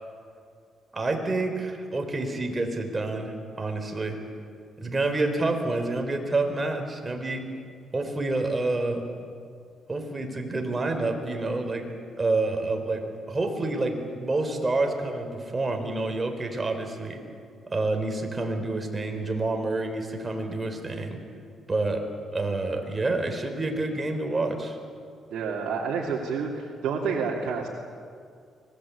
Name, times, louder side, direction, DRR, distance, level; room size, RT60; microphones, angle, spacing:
voice 1, 0.9-4.2 4.8-7.5 7.9-9.0 9.9-11.9 12.2-17.2 17.7-21.2 21.7-22.0 22.3-24.8, right 2 dB, 25° right, 5 dB, 4.1 m, -28 dB
voice 2, 25.3-27.7, right 5 dB, 75° right, -2 dB, 2.7 m, -29 dB
25.0 x 20.0 x 8.5 m, 2.3 s
cardioid pair, 90°, 0 cm